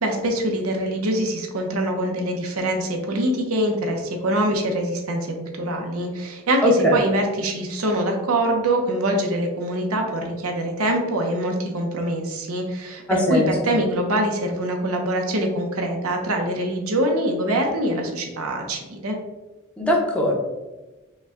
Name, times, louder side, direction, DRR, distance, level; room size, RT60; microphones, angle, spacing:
voice 1, 0.0-19.2, right 1 dB, 85° right, 2 dB, 0.8 m, -24 dB
voice 2, 6.6-7.0 13.1-13.8 19.8-20.4, equal, 5° left, -2 dB, 0.8 m, -20 dB
5.4 x 2.3 x 3.6 m, 1.1 s
head